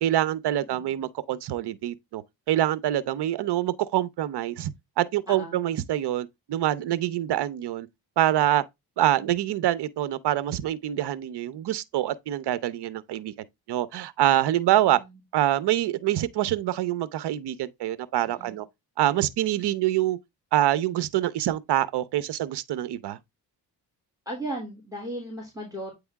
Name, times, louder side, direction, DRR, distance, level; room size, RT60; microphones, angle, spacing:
voice 1, 0.0-4.7 5.0-7.9 8.2-8.6 9.0-15.0 15.3-18.7 19.0-20.2 20.5-23.2, right 13 dB, 75° right, 0.8 m, -25 dB
voice 2, 5.3-5.6 14.5-15.2 18.2-18.6 24.2-25.9, right 1 dB, 10° right, 3.1 m, -37 dB
8.7 x 3.5 x 3.5 m
cardioid pair, 80°, 40 cm